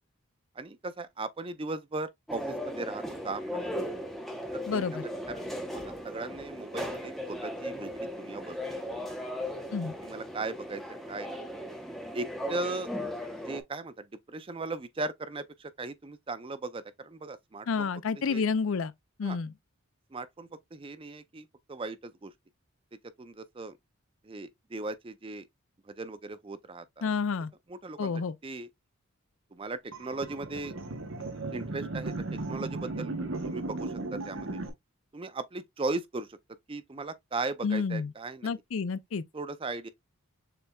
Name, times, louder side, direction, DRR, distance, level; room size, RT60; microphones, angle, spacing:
voice 1, 0.6-3.9 4.5-4.9 5.3-9.2 10.0-10.8 11.1-11.4 12.1-12.9 13.5-17.9 18.3-18.4 19.2-19.4 20.1-22.3 23.2-23.8 24.2-25.5 25.8-27.1 27.7-28.1 28.4-28.7 29.5-30.7 31.5-33.1 33.5-34.6 35.1-36.4 36.7-38.5 39.3-39.9, right 3 dB, 25° right, 0.4 m, -38 dB
sound 1, 2.3-13.6, equal, ahead, 0.9 m, -37 dB
voice 2, 4.7-5.0 9.7-10.0 17.7-18.9 19.2-19.5 27.0-27.5 28.0-28.4 37.6-38.1 38.4-39.2, left 5 dB, 65° left, 0.4 m, -29 dB
sound 2, 29.9-34.7, right 2 dB, 60° right, 1.0 m, -36 dB
6.8 x 3.4 x 2.3 m
head